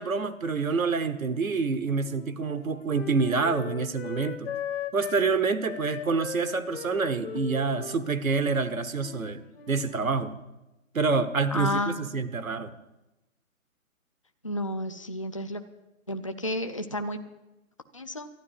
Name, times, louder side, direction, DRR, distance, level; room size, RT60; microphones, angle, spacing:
voice 1, 0.0-4.5 4.9-10.4 10.9-12.7, right 4 dB, 75° right, 12 dB, 1.1 m, -27 dB
Wind instrument woodwind instrument, 1.3-5.3 5.6-10.1, left 8 dB, 45° left, 1.1 m, -39 dB
voice 2, 11.5-12.1 14.4-15.6 16.1-17.2 17.9-18.3, left 1 dB, 25° left, 8 dB, 0.4 m, -31 dB
12.0 x 11.0 x 7.5 m, 0.97 s
figure-of-eight pair, 135°, 41 cm